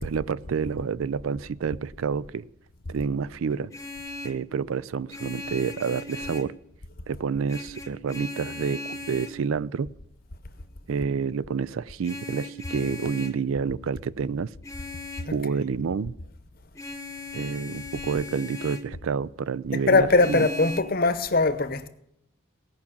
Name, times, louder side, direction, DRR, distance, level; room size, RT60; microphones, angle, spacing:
voice 1, 0.0-2.5 2.9-3.7 4.2-6.5 7.1-9.9 10.9-14.5 15.3-16.2 17.3-20.5, right 5 dB, 80° right, 0.4 m, -29 dB
Vehicle horn car horn honking, 3.5-4.5 5.1-6.6 7.5-9.4 12.0-13.4 14.6-15.4 16.7-18.9 20.1-20.8, left 2 dB, 15° left, 0.8 m, -38 dB
voice 2, 19.7-21.9, left 3 dB, 45° left, 0.8 m, -21 dB
17.0 x 5.9 x 8.5 m
head